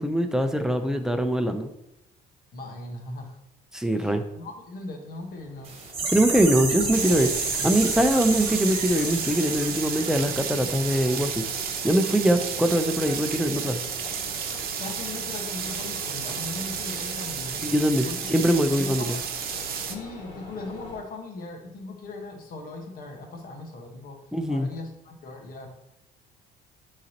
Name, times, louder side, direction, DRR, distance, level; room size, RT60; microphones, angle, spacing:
voice 1, 0.0-1.7 3.7-4.2 6.1-11.4 11.8-13.8 17.6-19.1 24.3-24.7, right 1 dB, 5° right, 6 dB, 0.6 m, -23 dB
voice 2, 2.5-3.4 4.0-5.8 14.8-17.7 18.1-18.3 18.8-19.2 19.8-24.2 24.5-25.7, left 2 dB, 55° left, 2 dB, 1.5 m, -39 dB
sound 1, 5.2-21.0, left 2 dB, 80° left, 2.4 m, -42 dB
sound 2, 5.6-11.3 11.5-11.6, right 3 dB, 35° right, 1.3 m, -31 dB
sound 3, 6.9-20.0, right 7 dB, 65° right, 0.8 m, -32 dB
9.3 x 4.0 x 3.0 m, 0.83 s
cardioid pair, 110°, 17 cm